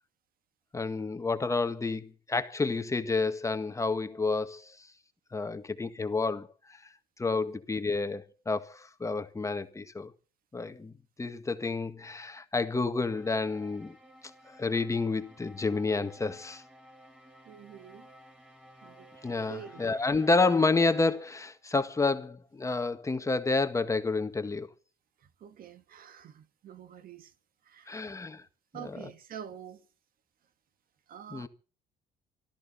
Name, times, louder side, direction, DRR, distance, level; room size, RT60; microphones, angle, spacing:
voice 1, 0.7-4.7 5.3-6.5 7.2-10.1 10.5-10.9 11.2-13.9 14.5-16.6 19.2-24.7 27.9-28.4 28.7-29.1 31.3-31.5, left 3 dB, 20° left, 1.8 m, -29 dB
voice 2, 7.2-7.6 17.4-18.1 18.8-19.1 19.4-19.8 25.2-27.3 27.6-28.2 28.7-29.8 31.1-31.5, right 9 dB, 60° right, 1.7 m, -47 dB
sound 1, 13.0-21.5, equal, 5° right, 7.1 m, -54 dB
25.0 x 14.0 x 4.2 m
cardioid pair, 110°, 17 cm